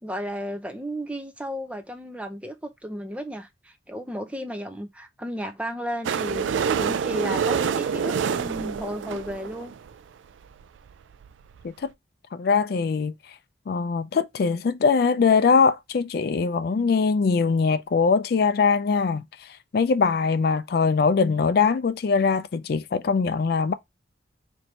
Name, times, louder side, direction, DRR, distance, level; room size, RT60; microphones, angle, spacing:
voice 1, 0.0-6.5 6.8-9.7, equal, 5° right, 0.4 m, -33 dB
sound 1, 6.0-9.9 10.6-10.7 10.9-11.0 11.1-11.3 11.6-11.7, right 7 dB, 80° right, 0.3 m, -26 dB
voice 2, 12.3-13.1 13.7-23.7, left 5 dB, 55° left, 0.3 m, -22 dB
4.4 x 2.6 x 3.0 m
head